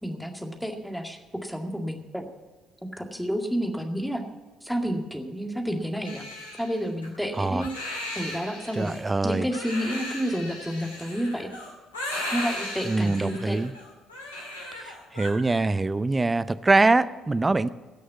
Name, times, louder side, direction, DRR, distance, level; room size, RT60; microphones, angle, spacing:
voice 1, 0.0-2.2 2.9-4.2 4.6-6.2 6.6-11.5 12.3-13.6, equal, ahead, 3 dB, 2.1 m, -30 dB
Crying sobbing, 6.0-15.3, left 1 dB, 90° left, 2.3 m, -36 dB
voice 2, 8.8-9.5 12.9-13.7 14.8-17.7, right 3 dB, 20° right, 15 dB, 0.6 m, -23 dB
17.0 x 6.4 x 8.1 m, 1.3 s
figure-of-eight pair, 50°, 0 cm